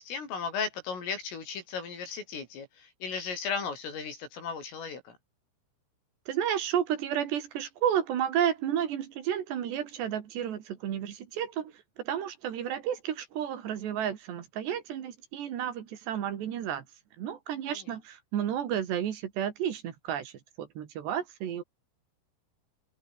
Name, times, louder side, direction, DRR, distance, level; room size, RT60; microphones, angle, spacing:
voice 1, 0.0-5.2 17.7-17.8, left 5 dB, 85° left, 9.6 m, -36 dB
voice 2, 6.3-16.8 17.2-21.6, right 9 dB, 65° right, 4.1 m, -32 dB
open air
omnidirectional pair, 5.7 m